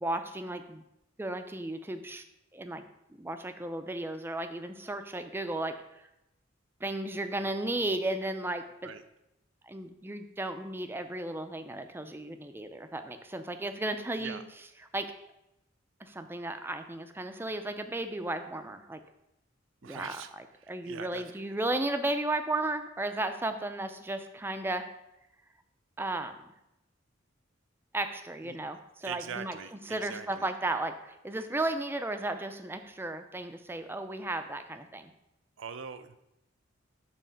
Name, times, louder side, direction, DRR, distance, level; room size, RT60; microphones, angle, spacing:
voice 1, 0.0-0.8 1.2-2.2 2.5-2.8 3.2-5.8 6.8-8.9 9.6-14.4 14.9-15.1 16.0-19.0 19.8-24.9 26.0-26.5 27.9-29.6 29.9-35.1, right 2 dB, 10° right, 8 dB, 0.4 m, -34 dB
voice 2, 19.8-20.3 20.6-21.3 28.4-28.6 29.0-30.5 35.6-36.2, right 7 dB, 75° right, 11 dB, 0.5 m, -42 dB
7.3 x 3.1 x 5.6 m, 0.87 s
head